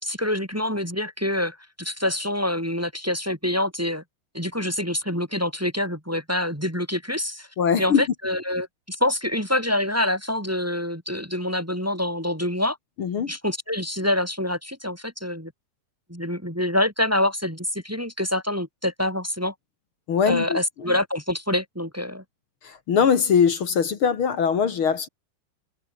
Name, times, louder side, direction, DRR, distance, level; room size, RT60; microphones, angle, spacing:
voice 1, 0.0-4.0 4.3-7.5 7.8-12.8 13.3-15.5 16.1-19.5 20.3-22.2, left 1 dB, 5° right, 2.4 m, -26 dB
voice 2, 7.6-8.0 13.0-13.3 20.1-20.6 22.6-25.1, left 7 dB, 50° left, 1.6 m, -21 dB
omnidirectional pair, 4.9 m